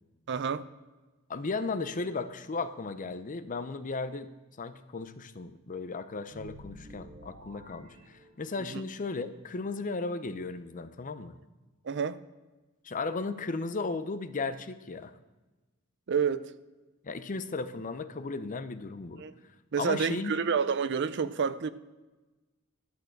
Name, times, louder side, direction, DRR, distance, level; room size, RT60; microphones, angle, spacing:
voice 1, 0.3-0.7 8.7-8.8 11.8-12.2 16.1-16.5 19.2-19.3 19.7-21.7, right 6 dB, 55° right, 0.5 m, -29 dB
voice 2, 1.3-4.3 4.6-11.4 12.8-15.1 17.0-19.2 19.8-20.4, left 3 dB, 40° left, 0.6 m, -35 dB
sound 1, 6.2-8.8, right 1 dB, 80° right, 2.3 m, -51 dB
11.5 x 6.4 x 6.6 m
head